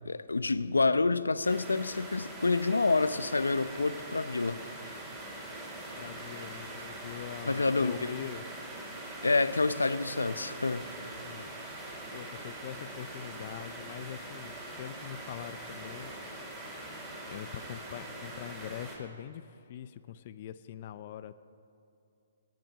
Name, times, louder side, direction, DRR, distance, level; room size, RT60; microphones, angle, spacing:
voice 1, 0.0-4.6 7.5-8.2 9.2-10.9, left 3 dB, 90° left, 0.7 m, -28 dB
sound 1, 1.4-19.0, right 1 dB, 10° right, 4.3 m, -43 dB
voice 2, 6.0-8.4 11.3-11.5 12.1-16.1 17.2-21.4, left 10 dB, 45° left, 0.6 m, -43 dB
18.5 x 7.7 x 8.9 m
hypercardioid pair, 135°, 0 cm